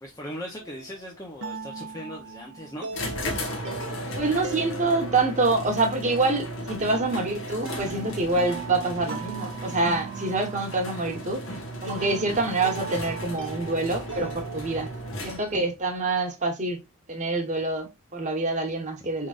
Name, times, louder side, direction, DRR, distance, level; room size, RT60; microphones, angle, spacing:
voice 1, 0.0-2.9, equal, 15° left, 0.8 m, -39 dB
sound 1, 0.6-15.3, right 4 dB, 60° right, 0.9 m, -39 dB
sound 2, 2.9-15.7, equal, 60° left, 1.4 m, -35 dB
voice 2, 4.2-11.4 11.8-14.9 15.2-16.8 17.1-19.3, right 2 dB, 35° right, 1.3 m, -26 dB
4.9 x 3.8 x 2.5 m
head